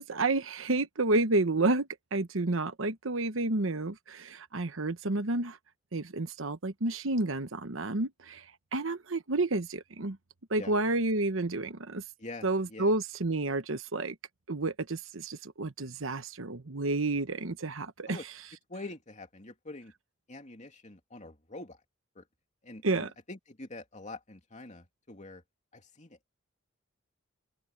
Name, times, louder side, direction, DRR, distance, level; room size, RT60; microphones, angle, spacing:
voice 1, 0.0-5.6 5.9-8.4 8.7-10.2 10.5-12.0 12.4-14.1 14.5-18.2 22.8-23.1, right 2 dB, 70° right, 1.1 m, -30 dB
voice 2, 12.2-12.9 18.1-18.3 18.7-19.9 20.3-21.8 22.1-22.2 22.6-25.4 25.7-26.3, left 2 dB, 35° left, 2.8 m, -45 dB
open air
head